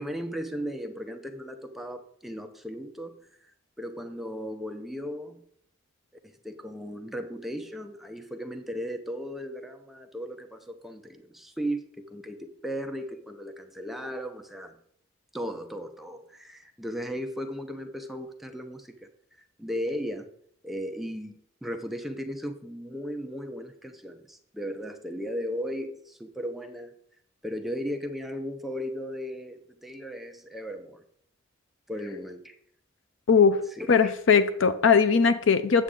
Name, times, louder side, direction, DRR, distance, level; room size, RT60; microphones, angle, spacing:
voice 1, 0.0-3.3 3.8-5.4 6.2-14.8 15.3-19.1 19.6-20.3 20.6-21.3 21.6-26.9 27.4-31.0 31.9-32.5 33.7-34.2, equal, ahead, 5 dB, 0.7 m, -36 dB
voice 2, 33.9-35.8, left 5 dB, 65° left, 12 dB, 0.5 m, -20 dB
8.4 x 7.2 x 3.8 m, 0.65 s
head